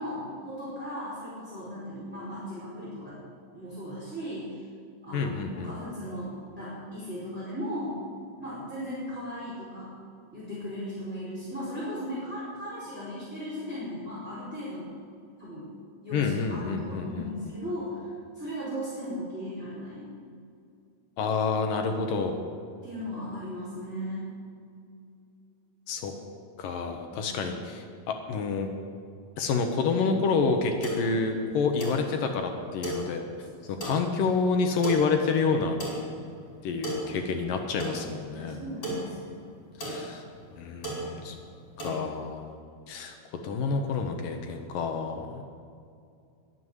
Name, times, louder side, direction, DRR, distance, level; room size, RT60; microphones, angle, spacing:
voice 1, 0.0-3.2 3.5-4.6 5.0-8.0 8.4-10.0 10.3-14.9 15.4-15.7 16.0-18.0 18.3-20.0 22.3-22.5 22.8-24.3 27.1-27.3 38.3-39.3, equal, 5° right, -10 dB, 4.4 m, -37 dB
voice 2, 5.1-5.7 16.1-17.3 21.2-22.4 25.9-26.1 26.6-28.7 29.4-33.2 33.7-35.8 36.6-38.6 39.8-40.2 40.5-41.4 41.8-42.5 42.9-43.2 43.4-45.4, left 4 dB, 70° left, 4 dB, 2.6 m, -28 dB
sound 1, 30.5-42.0, right 1 dB, 20° left, 5.3 m, -38 dB
22.5 x 7.6 x 8.1 m, 2.4 s
omnidirectional pair, 4.6 m